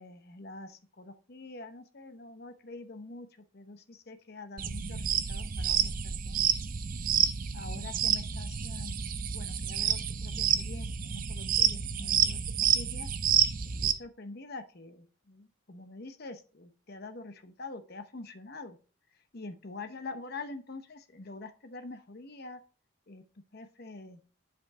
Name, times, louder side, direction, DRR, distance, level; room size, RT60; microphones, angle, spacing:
voice 1, 0.0-3.3 3.5-6.5 7.5-13.1 13.8-18.8 19.3-22.6 23.1-23.2 23.5-24.2, left 3 dB, 50° left, 9 dB, 0.9 m, -45 dB
sound 1, 4.6-13.9, right 8 dB, 40° right, 0.5 m, -29 dB
8.1 x 5.2 x 3.6 m, 0.37 s
head